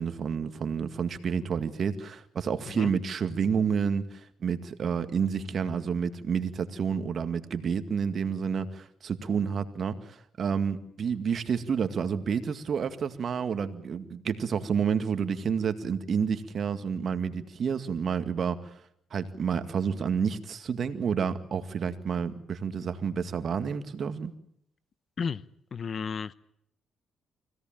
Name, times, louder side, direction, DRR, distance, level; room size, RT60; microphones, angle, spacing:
voice 1, 0.0-18.6 19.1-24.3, right 6 dB, 55° right, 9 dB, 2.0 m, -29 dB
voice 2, 25.7-26.3, left 6 dB, 45° left, 17 dB, 0.9 m, -32 dB
25.0 x 17.0 x 9.0 m, 0.73 s
cardioid pair, 90°, 0 cm